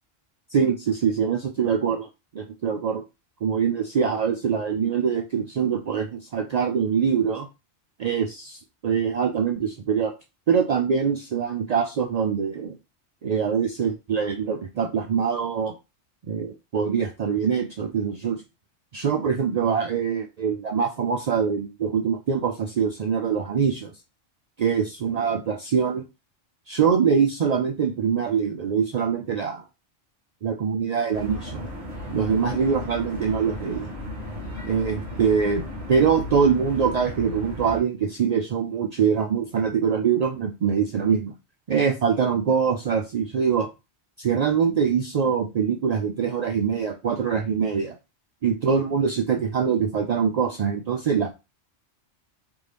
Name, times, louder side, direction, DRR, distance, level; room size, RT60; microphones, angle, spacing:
voice 1, 0.5-2.1 2.3-3.0 3.4-7.5 8.0-10.1 10.5-12.8 13.2-15.7 16.3-18.4 18.9-23.9 24.6-26.0 26.7-29.6 30.4-31.7 32.1-33.9 34.6-35.6 35.9-41.3 41.7-43.7 44.2-47.9 48.4-51.4, right 6 dB, 70° right, 3 dB, 0.3 m, -24 dB
sound 1, 31.1-37.8, left 1 dB, 15° right, 2.0 m, -35 dB
3.8 x 2.7 x 3.3 m, 0.27 s
omnidirectional pair, 1.2 m